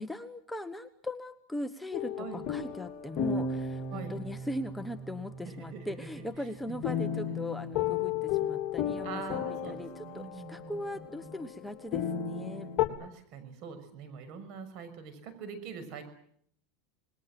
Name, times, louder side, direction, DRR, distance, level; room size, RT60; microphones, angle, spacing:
voice 1, 0.0-12.7, left 1 dB, 5° left, 9 dB, 1.2 m, -39 dB
sound 1, 1.9-12.9, left 7 dB, 45° left, 3.4 m, -34 dB
voice 2, 2.2-2.5 3.9-4.2 5.4-5.9 6.2-6.3 6.7-7.5 9.0-11.4 13.0-16.0, right 5 dB, 55° right, 11 dB, 6.3 m, -44 dB
27.5 x 21.0 x 7.7 m, 0.65 s
supercardioid pair, 135°, 0 cm